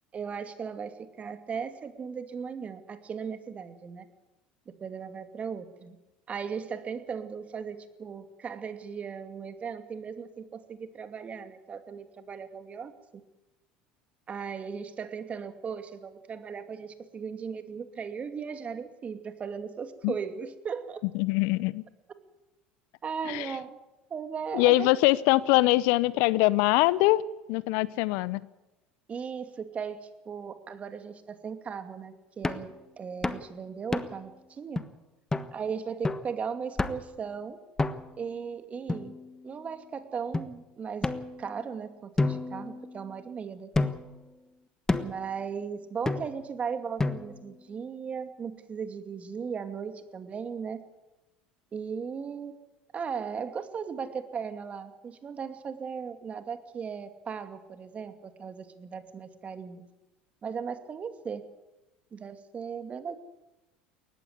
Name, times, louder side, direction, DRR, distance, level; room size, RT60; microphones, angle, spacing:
voice 1, 0.1-4.1 4.8-6.0 6.3-12.9 14.3-21.0 23.0-23.8 24.1-24.9 29.1-34.8 35.5-37.6 38.2-39.2 39.4-41.1 41.4-43.9 45.0-50.8 51.7-52.5 52.9-59.8 60.4-61.4 62.1-63.2, right 6 dB, 35° right, 9 dB, 2.5 m, -37 dB
voice 2, 21.1-21.8 23.3-23.5 24.5-27.2 27.5-28.4, left 19 dB, 65° left, 20 dB, 0.7 m, -23 dB
sound 1, 32.4-32.7 33.2-33.5 33.9-34.3 34.8-34.9 35.3-35.5 36.0-36.3 36.8-37.1 37.8-38.2 38.9-39.6 40.3-40.5 41.0-41.7 42.2-43.2 43.7-44.2 44.9-45.3 46.1-46.5 47.0-47.5, left 3 dB, 15° left, 1.3 m, -31 dB
19.0 x 15.0 x 9.6 m, 1.0 s
hypercardioid pair, 70°, 4 cm